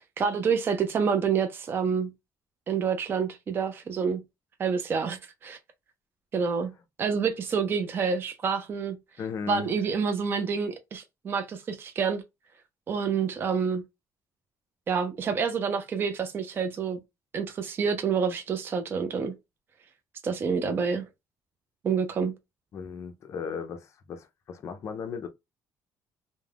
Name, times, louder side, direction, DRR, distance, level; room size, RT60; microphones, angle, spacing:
voice 1, 0.2-2.1 2.7-4.2 4.6-5.6 6.3-6.7 7.0-9.0 9.5-12.2 12.9-13.8 14.9-17.0 17.3-19.3 20.2-21.0 21.8-22.3, right 6 dB, 30° right, 0.4 m, -28 dB
voice 2, 9.2-9.7 22.7-25.3, left 6 dB, 45° left, 0.4 m, -36 dB
2.3 x 2.1 x 3.2 m
cardioid pair, 155°, 7 cm